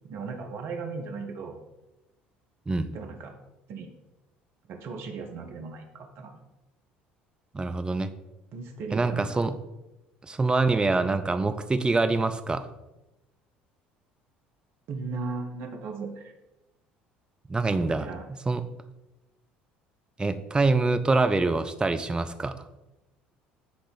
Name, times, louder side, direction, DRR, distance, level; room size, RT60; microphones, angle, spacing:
voice 1, 0.1-1.6 2.9-3.3 3.7-3.9 4.7-6.3 8.5-9.4 14.9-16.3 17.7-18.2, right 4 dB, 50° right, 3 dB, 1.2 m, -37 dB
voice 2, 7.5-8.1 8.9-9.5 10.3-12.7 17.5-18.1 18.5-18.6 20.2-22.5, right 3 dB, 15° right, 9 dB, 0.6 m, -25 dB
9.5 x 3.8 x 4.0 m, 0.98 s
figure-of-eight pair, 60°, 5 cm